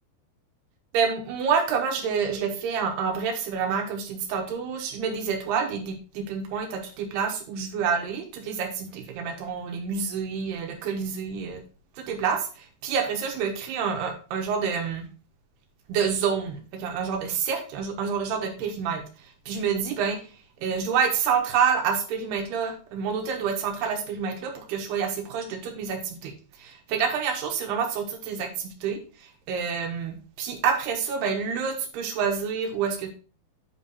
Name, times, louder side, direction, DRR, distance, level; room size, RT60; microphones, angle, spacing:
voice 1, 0.9-11.6 12.0-15.0 15.9-20.3 20.6-26.3 26.6-33.1, right 6 dB, 85° right, 4 dB, 3.3 m, -28 dB
8.6 x 5.6 x 4.0 m, 0.36 s
omnidirectional pair, 4.5 m